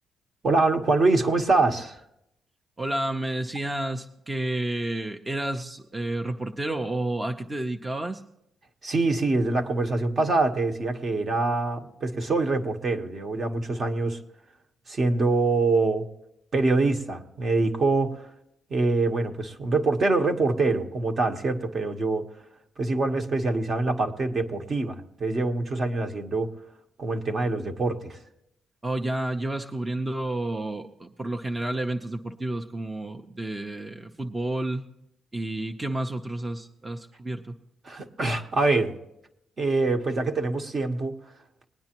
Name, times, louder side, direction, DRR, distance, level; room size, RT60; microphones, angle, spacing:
voice 1, 0.4-2.0 8.8-14.2 14.9-16.1 16.5-18.3 18.7-22.3 22.8-26.5 27.0-28.2 37.8-39.0 39.6-41.2, right 3 dB, 40° right, 5 dB, 1.3 m, -25 dB
voice 2, 2.8-8.2 28.8-34.8 35.3-37.6, right 1 dB, 20° right, 4 dB, 0.8 m, -30 dB
20.5 x 9.4 x 3.0 m, 0.79 s
cardioid pair, 85°, 0 cm